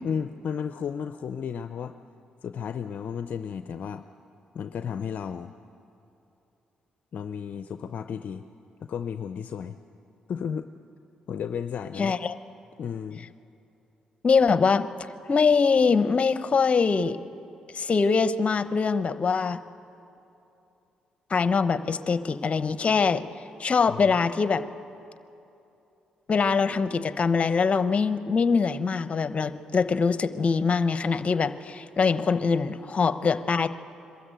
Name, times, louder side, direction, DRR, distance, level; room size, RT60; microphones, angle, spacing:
voice 1, 0.0-2.0 2.4-4.1 4.5-5.5 7.1-8.4 8.8-9.8 10.3-10.7 11.3-12.1 12.8-13.3 23.9-24.1, left 7 dB, 60° left, 10 dB, 0.5 m, -33 dB
voice 2, 12.0-12.4 14.2-14.9 15.3-17.2 17.7-19.6 21.3-23.2 23.6-24.6 26.3-33.7, left 5 dB, 45° left, 13 dB, 0.9 m, -23 dB
23.0 x 13.0 x 9.2 m, 2.8 s
supercardioid pair, 50°, 3 cm